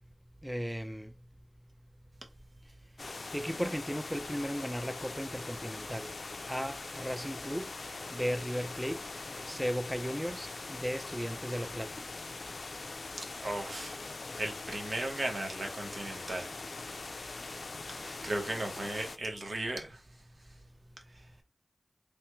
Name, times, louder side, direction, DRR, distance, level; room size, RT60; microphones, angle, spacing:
voice 1, 0.4-1.1 3.3-6.1 6.5-7.7 8.1-9.0 9.5-11.9, equal, 5° right, 0.4 m, -35 dB
sound 1, 3.0-19.2, left 3 dB, 75° left, 0.3 m, -42 dB
voice 2, 13.4-14.0 14.3-16.5 18.0-20.0, right 1 dB, 65° right, 1.0 m, -36 dB
3.3 x 2.2 x 3.0 m
cardioid pair, 45°, 0 cm